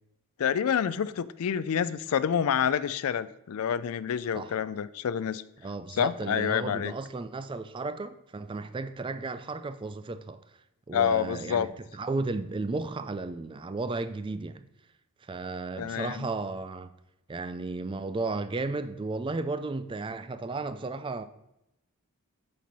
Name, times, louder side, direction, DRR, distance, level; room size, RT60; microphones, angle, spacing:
voice 1, 0.4-5.4 5.9-6.9 10.9-11.7 15.8-16.3, left 8 dB, 70° left, 0.4 m, -28 dB
voice 2, 5.6-10.4 10.9-14.7 15.2-16.9 17.3-21.2, right 3 dB, 20° right, 0.3 m, -34 dB
7.4 x 4.4 x 5.4 m
head